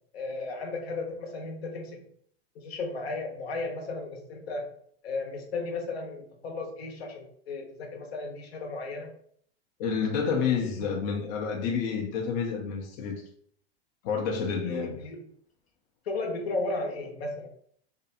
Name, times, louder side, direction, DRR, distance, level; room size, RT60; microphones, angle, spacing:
voice 1, 0.1-2.0 2.5-4.7 5.0-9.1 14.6-15.2 16.0-17.5, left 3 dB, 70° left, 1 dB, 0.9 m, -35 dB
voice 2, 9.8-13.2 14.0-15.0, left 6 dB, 45° left, 1 dB, 0.5 m, -29 dB
2.6 x 2.2 x 2.6 m, 0.63 s
hypercardioid pair, 115°, 32 cm